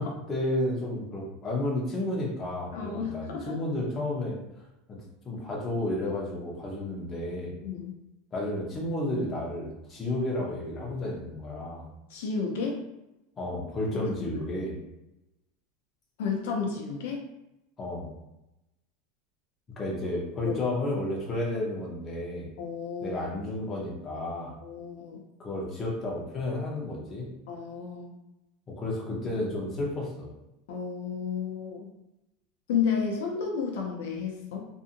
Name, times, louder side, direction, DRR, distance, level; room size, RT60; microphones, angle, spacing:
voice 1, 0.0-4.4 4.9-5.0 5.2-7.5 8.3-11.9 13.4-14.8 17.8-18.1 19.8-22.5 23.0-24.5 25.4-27.3 28.7-30.3, left 1 dB, 20° left, -4 dB, 0.7 m, -32 dB
voice 2, 2.7-3.6 7.6-7.9 12.1-12.8 13.9-14.3 16.2-17.2 20.5-20.6 22.6-23.2 24.6-25.2 27.5-28.1 30.7-31.8 32.7-34.7, left 6 dB, 80° left, 0 dB, 0.6 m, -32 dB
2.7 x 2.5 x 2.5 m, 0.92 s
supercardioid pair, 150°, 0 cm